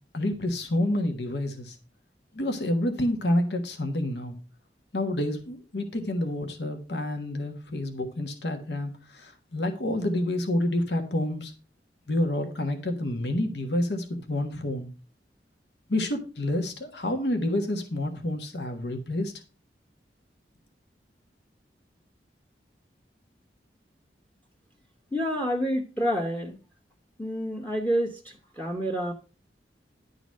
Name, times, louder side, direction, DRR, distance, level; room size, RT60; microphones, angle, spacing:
voice 1, 0.1-1.8 2.3-4.4 4.9-11.5 12.1-14.9 15.9-19.3, left 1 dB, 75° left, 5 dB, 1.4 m, -28 dB
voice 2, 25.1-26.6 27.2-29.1, equal, 10° left, 3 dB, 0.9 m, -28 dB
11.0 x 4.0 x 6.2 m, 0.34 s
head